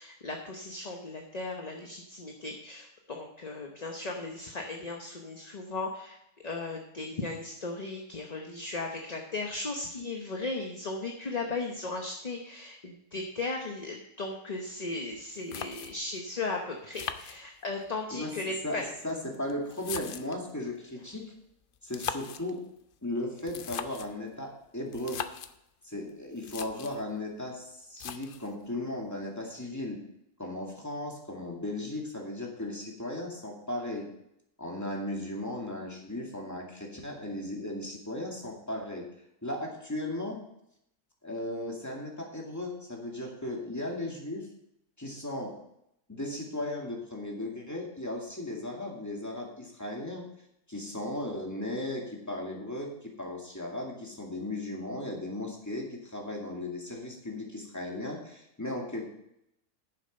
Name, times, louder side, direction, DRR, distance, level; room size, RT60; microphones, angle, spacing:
voice 1, 0.0-6.2 6.4-18.8, left 3 dB, 30° left, 2 dB, 0.9 m, -36 dB
sound 1, 15.1-15.2 15.5-16.2 16.9-17.9 18.8-20.5 21.8-22.5 23.4-24.2 24.9-25.6 26.1-26.2 26.4-27.0 28.0-28.6, left 7 dB, 90° left, 0.4 m, -39 dB
voice 2, 18.6-21.3 21.8-22.6 23.0-25.2 25.8-30.0 30.4-34.1 34.6-39.0 39.4-40.4 41.2-44.5 45.0-45.5 46.1-50.2 50.7-59.0, left 1 dB, 10° left, -1 dB, 2.1 m, -36 dB
10.0 x 7.1 x 5.3 m, 0.79 s
omnidirectional pair, 1.6 m